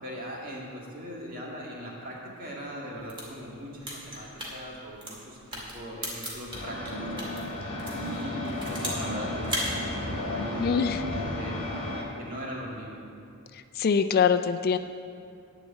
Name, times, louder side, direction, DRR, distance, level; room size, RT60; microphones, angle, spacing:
voice 1, 0.0-7.1 8.0-10.7 11.1-11.6 12.2-13.0, equal, 40° right, -3 dB, 2.1 m, -40 dB
gun handling, 3.0-7.4 7.8-9.1 9.4-9.7, equal, 25° right, 2.2 m, -36 dB
sound 1, 6.5-12.0, left 1 dB, 30° left, 2.1 m, -33 dB
voice 2, 10.6-11.0 13.8-14.8, left 6 dB, 45° left, 9 dB, 0.3 m, -23 dB
11.0 x 4.9 x 8.4 m, 2.5 s
head